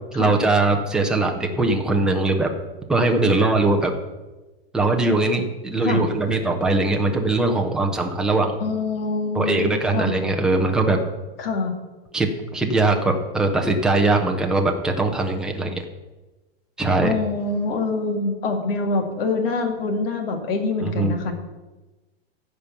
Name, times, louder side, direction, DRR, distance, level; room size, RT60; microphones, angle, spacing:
voice 1, 0.1-2.5 2.9-3.9 4.7-8.5 9.3-11.0 12.1-15.8 16.8-17.1 20.8-21.1, right 2 dB, ahead, 2 dB, 0.5 m, -21 dB
voice 2, 8.6-10.1 11.4-11.7 17.0-21.3, left 3 dB, 65° left, 5 dB, 2.1 m, -25 dB
15.0 x 5.2 x 6.9 m, 1.1 s
supercardioid pair, 170°, 32 cm